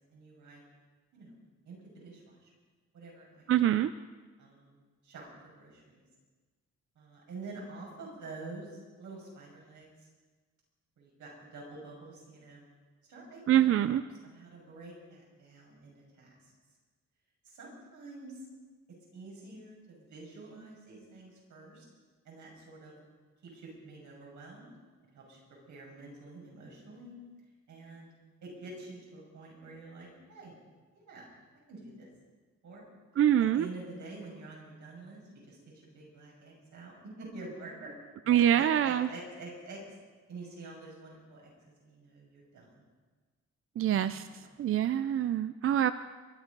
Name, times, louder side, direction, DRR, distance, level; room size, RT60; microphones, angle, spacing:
voice 1, 0.1-0.6 1.1-1.4 1.6-2.5 2.9-3.5 4.4-5.3 5.5-6.0 6.9-10.1 11.0-12.6 13.1-13.9 14.3-16.5 17.4-18.4 19.1-21.8 22.2-23.0 23.4-24.7 25.1-25.4 25.7-27.2 27.7-28.1 28.4-30.5 30.9-31.2 31.7-32.1 32.6-32.8 33.4-35.2 35.5-37.9 38.5-39.8 40.3-41.5 41.8-42.7 43.9-44.2, right 2 dB, 80° right, -2 dB, 6.5 m, -47 dB
voice 2, 3.5-3.9 13.5-14.0 33.2-33.7 38.3-39.1 43.8-44.3 44.6-45.9, right 11 dB, 50° right, 13 dB, 0.4 m, -25 dB
23.0 x 11.5 x 5.3 m, 1.4 s
wide cardioid pair, 170°, 30 cm